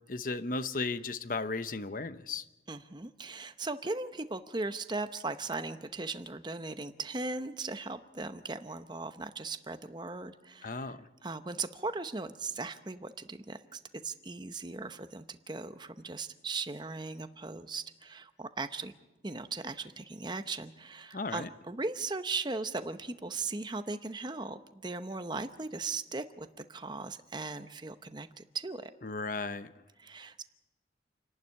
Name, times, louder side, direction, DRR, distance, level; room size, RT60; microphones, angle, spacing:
voice 1, 0.1-2.4 10.6-11.1 21.1-21.5 29.0-29.7, left 3 dB, 45° left, 0.8 m, -35 dB
voice 2, 2.7-10.9 11.2-18.9 19.2-28.9 30.0-30.4, right 3 dB, 25° right, 0.8 m, -38 dB
28.0 x 11.5 x 9.8 m
head